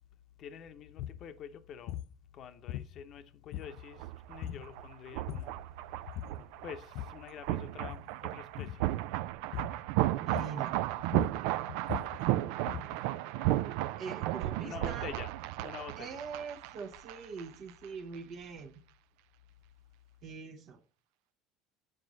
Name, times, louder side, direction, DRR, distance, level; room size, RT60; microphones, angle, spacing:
voice 1, 0.4-2.0 2.3-5.6 6.6-8.9 14.6-15.3 15.6-16.1, left 8 dB, 50° left, 0.8 m, -47 dB
sound 1, 0.9-1.2 1.9-2.2 2.7-3.2 3.5-4.0 4.4-4.7 5.1-5.6 6.1-6.4 6.7-7.3 7.7-8.1 8.6-8.9 9.5-9.9 10.3-10.7 11.0-13.0, left 13 dB, 70° left, 0.4 m, -41 dB
sound 2, 3.6-17.4 17.7-17.8, right 15 dB, 75° right, 0.3 m, -34 dB
voice 2, 10.2-10.8 14.0-15.1 16.0-18.7 20.2-20.8, right 5 dB, 55° right, 0.9 m, -43 dB
7.7 x 4.9 x 4.0 m
supercardioid pair, 100°, 0 cm